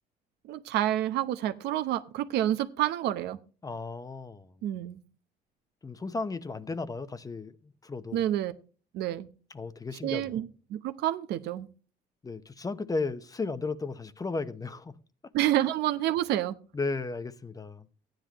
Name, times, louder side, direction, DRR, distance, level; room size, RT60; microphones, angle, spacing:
voice 1, 0.5-3.4 4.6-5.0 8.1-8.5 8.9-9.3 10.0-10.5 10.7-11.7 15.3-16.5, right 13 dB, 80° right, 0.9 m, -28 dB
voice 2, 3.6-4.5 5.8-8.2 9.5-10.4 12.2-14.9 16.7-17.9, left 3 dB, 20° left, 0.9 m, -35 dB
15.0 x 10.5 x 3.0 m
cardioid pair, 110°, 17 cm